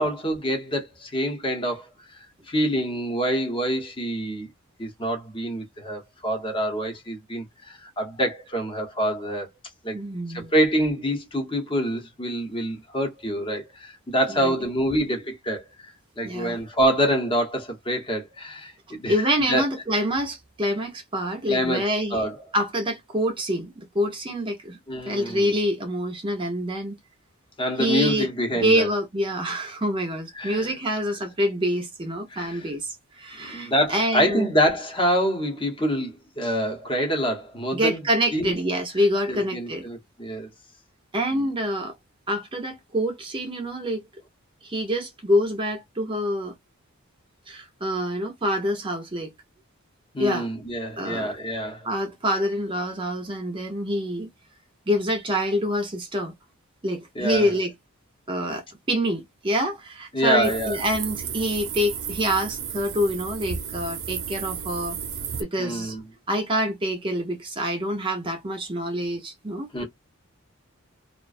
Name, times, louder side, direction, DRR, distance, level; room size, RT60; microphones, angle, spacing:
voice 1, 0.0-2.2 2.5-4.5 4.8-9.5 9.8-10.0 10.3-15.9 16.2-19.2 19.5-19.7 21.5-22.4 24.9-25.5 27.6-28.9 30.3-30.7 32.3-32.7 33.4-38.0 38.3-38.5 39.3-40.5 41.3-41.5 50.1-51.9 57.1-57.5 60.1-60.8 65.6-66.0 69.7-69.8, equal, 25° left, 0.8 m, -26 dB
voice 2, 9.9-10.5 14.4-14.5 16.2-16.6 19.1-22.3 22.5-24.8 25.1-26.9 27.8-28.3 28.6-32.9 33.2-34.5 37.7-39.8 41.1-41.9 42.3-44.0 44.6-46.5 47.5-49.3 50.2-50.5 51.0-51.3 51.8-54.3 54.9-56.3 56.8-57.7 58.3-65.0 65.4-65.9 66.3-69.8, equal, 25° right, 0.5 m, -26 dB
sound 1, 60.4-65.4, right 7 dB, 75° right, 0.7 m, -33 dB
2.4 x 2.2 x 2.4 m
head